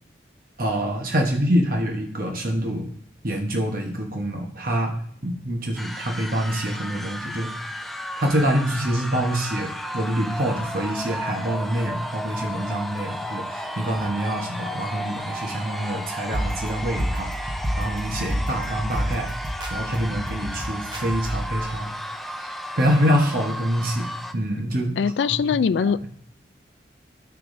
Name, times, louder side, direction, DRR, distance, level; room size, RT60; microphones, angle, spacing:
voice 1, 0.6-2.9 3.2-4.9 5.2-7.5 8.2-19.3 19.7-21.9 22.7-24.9, equal, 50° right, 1 dB, 1.1 m, -25 dB
sound 1, 5.8-24.3, equal, ahead, 0.4 m, -34 dB
sound 2, 16.3-21.6, equal, 25° right, 0.9 m, -29 dB
voice 2, 25.0-26.1, left 6 dB, 80° left, 17 dB, 0.3 m, -22 dB
9.6 x 6.8 x 2.6 m, 0.67 s
head